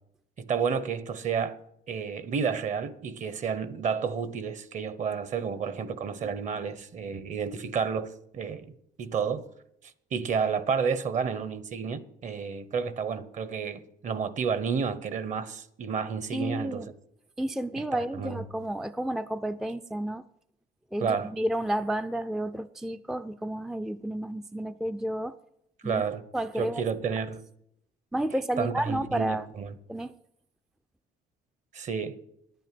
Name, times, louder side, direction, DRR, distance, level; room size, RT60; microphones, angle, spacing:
voice 1, 0.4-1.6 1.9-8.7 9.0-9.4 10.1-16.8 17.9-18.4 21.0-21.3 25.8-26.2 26.6-27.4 28.6-29.7 31.7-32.2, right 6 dB, 45° right, 1.0 m, -30 dB
voice 2, 16.3-16.9 17.4-20.2 20.9-25.3 25.8-26.0 26.3-26.8 28.1-29.5 29.9-30.2, right 1 dB, ahead, 0.4 m, -31 dB
10.5 x 9.2 x 7.6 m
cardioid pair, 110°, 17 cm